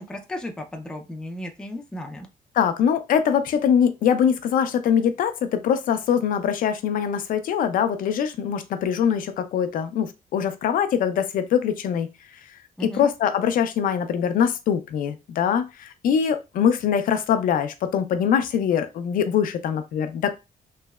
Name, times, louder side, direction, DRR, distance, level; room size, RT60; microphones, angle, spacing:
voice 1, 0.0-2.3 12.8-13.0, left 1 dB, 5° left, 3 dB, 0.4 m, -34 dB
voice 2, 2.5-12.4 12.8-20.3, left 8 dB, 70° left, 9 dB, 0.4 m, -23 dB
3.1 x 2.8 x 2.3 m, 0.26 s
cardioid pair, 165°, 15 cm